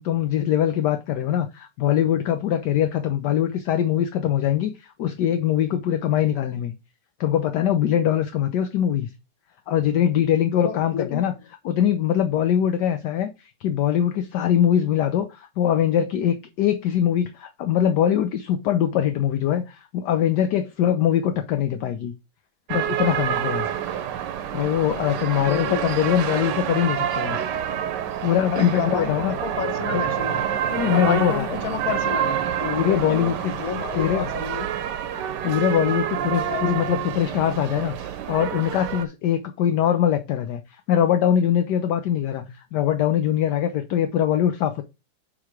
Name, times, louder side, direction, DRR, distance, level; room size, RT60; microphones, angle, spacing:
voice 1, 0.0-6.7 7.2-9.1 9.7-11.3 11.6-22.1 22.7-23.7 24.5-27.4 28.2-29.4 30.7-31.5 32.6-33.5 33.9-34.3 35.2-44.8, left 10 dB, 70° left, 1.2 m, -22 dB
voice 2, 10.6-11.3 25.4-25.8 28.5-30.4 30.9-32.4 32.8-34.7 36.2-36.8, left 8 dB, 55° left, 1.4 m, -30 dB
sound 1, 22.7-39.1, right 10 dB, 70° right, 1.3 m, -28 dB
7.5 x 3.2 x 4.6 m
omnidirectional pair, 2.0 m